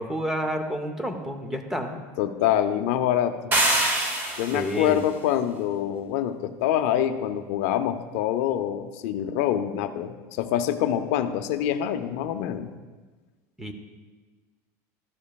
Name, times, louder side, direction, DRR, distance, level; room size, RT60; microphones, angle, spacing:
voice 1, 0.0-2.0 4.5-5.0 13.6-13.7, equal, 5° right, 5 dB, 0.5 m, -29 dB
voice 2, 1.9-3.5 4.4-12.7, left 10 dB, 65° left, 9 dB, 0.5 m, -26 dB
sound 1, 3.5-4.8, right 1 dB, 25° right, 1.0 m, -24 dB
13.0 x 7.2 x 2.3 m, 1.3 s
cardioid pair, 165°, 8 cm